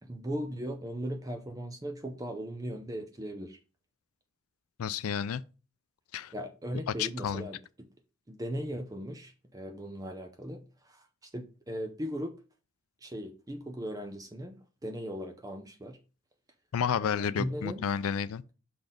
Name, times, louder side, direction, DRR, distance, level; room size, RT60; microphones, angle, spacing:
voice 1, 0.0-3.6 6.3-7.9 8.3-12.3 13.0-16.0 17.0-17.8, equal, 15° right, 0.5 m, -38 dB
voice 2, 4.8-5.4 6.1-6.3 6.9-7.5 16.7-18.4, left 7 dB, 85° left, 0.4 m, -31 dB
5.8 x 4.1 x 5.1 m
head